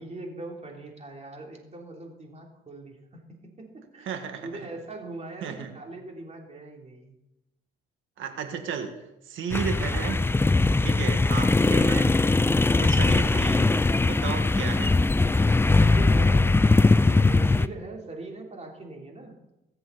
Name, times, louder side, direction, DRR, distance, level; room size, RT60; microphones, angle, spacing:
voice 1, 0.0-7.2 12.6-13.0 15.8-19.4, right 2 dB, 35° right, 0 dB, 3.5 m, -41 dB
voice 2, 4.1-4.5 5.4-5.7 8.2-8.9 9.2-10.2 10.8-12.2 12.8-13.7 14.0-15.0, right 7 dB, 80° right, 5 dB, 1.9 m, -33 dB
sound 1, 9.5-17.7, left 3 dB, 10° left, 0.4 m, -21 dB
22.5 x 7.9 x 4.2 m, 0.94 s
cardioid pair, 90°, 20 cm